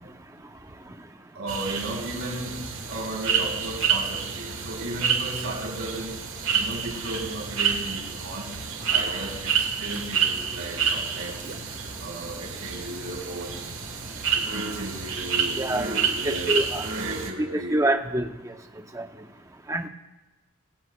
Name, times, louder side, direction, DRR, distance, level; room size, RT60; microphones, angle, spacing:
voice 1, 1.3-6.2 6.5-8.5 8.9-11.5 12.0-13.6 14.3-16.6 17.0-17.8, right 2 dB, 80° right, -2 dB, 5.0 m, -35 dB
sound 1, 1.5-17.3, right 6 dB, 60° right, 1.5 m, -29 dB
voice 2, 15.6-15.9 16.5-16.8 17.4-18.5 18.9-19.1 19.7-19.9, right 1 dB, 15° right, 6 dB, 0.7 m, -26 dB
24.0 x 14.0 x 2.3 m, 1.1 s
head